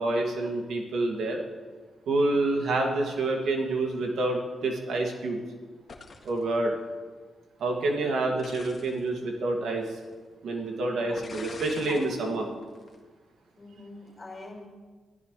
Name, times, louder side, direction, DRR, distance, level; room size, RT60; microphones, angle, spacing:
voice 1, 0.0-1.4 2.1-5.4 6.2-6.7 7.6-9.9 10.4-12.5, right 2 dB, 75° right, 1 dB, 2.3 m, -28 dB
sound 1, 5.9-6.4 8.4-9.0 9.9-10.0 11.2-12.2 12.6-13.0, left 4 dB, 40° left, 1.9 m, -44 dB
voice 2, 11.0-11.4 11.8-12.5 13.6-14.7, left 2 dB, 20° left, -1 dB, 5.5 m, -44 dB
21.5 x 14.5 x 3.3 m, 1.4 s
wide cardioid pair, 150°, 0 cm